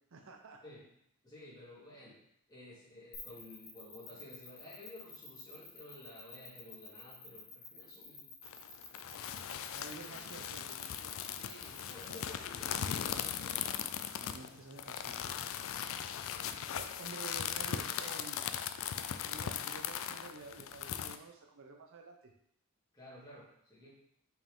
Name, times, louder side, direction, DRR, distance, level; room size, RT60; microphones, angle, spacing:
voice 1, 0.1-0.6 9.7-11.4 14.1-15.4 16.1-18.4 19.2-22.3, right 3 dB, 60° right, 2 dB, 0.7 m, -51 dB
voice 2, 1.2-2.2 2.5-8.3 9.6-10.3 11.4-13.7 16.3-16.5 22.9-23.9, left 1 dB, 20° left, -8 dB, 2.4 m, -53 dB
sound 1, 3.1-12.3, left 4 dB, 85° left, 1.9 m, -51 dB
sound 2, 8.4-21.2, left 9 dB, 65° left, 0.4 m, -39 dB
5.8 x 4.5 x 3.7 m, 0.72 s
head